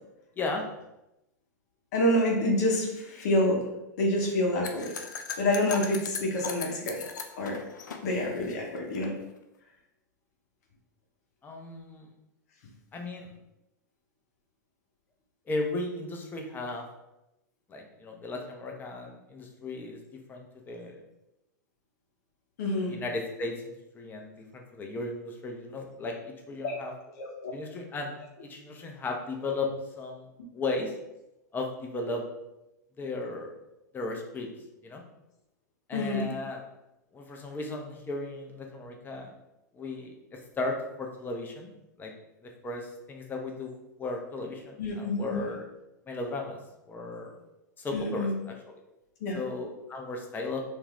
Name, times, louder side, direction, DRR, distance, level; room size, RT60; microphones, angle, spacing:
voice 1, 0.4-0.7 11.4-12.1 12.9-13.3 15.5-16.8 17.7-21.0 22.9-26.9 27.5-28.1 28.5-29.7 30.0-30.3 30.5-30.9 31.5-32.2 33.0-33.5 33.9-34.5 34.8-35.0 35.9-36.6 37.1-39.3 39.7-41.7 42.0-42.1 42.6-45.6 46.1-46.6 46.9-47.3 47.8-48.8 49.3-50.6, left 2 dB, 20° left, 2 dB, 0.6 m, -35 dB
voice 2, 1.9-3.7 4.0-4.9 5.4-7.0 7.4-7.6 8.0-9.1 22.6-23.0 26.6-26.7 27.2-27.5 35.9-36.3 44.8-45.4 47.9-48.3 49.2-49.4, left 1 dB, 60° left, -1 dB, 0.8 m, -27 dB
sound 1, 4.6-9.1, left 5 dB, 80° left, 0.4 m, -39 dB
2.5 x 2.3 x 3.3 m, 0.90 s
hypercardioid pair, 100°, 10 cm